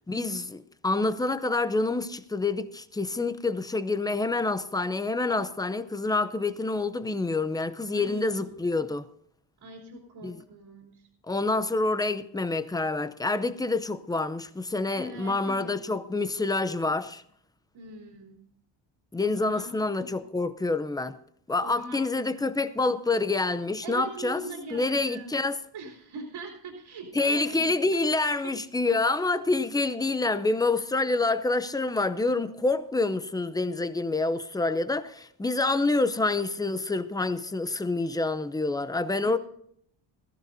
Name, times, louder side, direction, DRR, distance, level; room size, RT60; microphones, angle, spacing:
voice 1, 0.1-9.1 10.2-10.4 11.3-17.2 19.1-21.2 21.5-24.4 24.7-25.6 27.1-39.4, left 3 dB, 10° left, 0.5 m, -27 dB
voice 2, 7.9-8.5 9.6-11.1 14.9-15.8 17.7-18.4 19.2-20.1 21.6-22.6 23.8-25.3 25.7-28.0 28.4-28.5 39.2-39.4, right 2 dB, 85° right, 3.6 m, -42 dB
21.0 x 14.5 x 2.7 m
wide cardioid pair, 140°, 47 cm